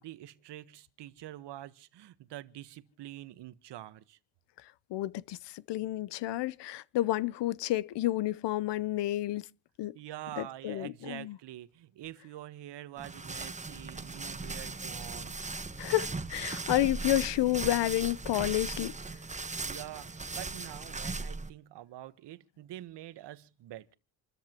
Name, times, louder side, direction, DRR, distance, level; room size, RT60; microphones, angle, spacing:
voice 1, 0.0-4.2 9.9-15.4 19.6-24.0, right 14 dB, 65° right, 1.4 m, -46 dB
voice 2, 4.9-9.5 9.8-9.9 10.4-11.4 15.8-18.9, left 15 dB, 65° left, 0.9 m, -30 dB
sound 1, 13.0-21.5, right 3 dB, 15° right, 1.3 m, -38 dB
28.5 x 13.5 x 3.0 m
supercardioid pair, 75°, 45 cm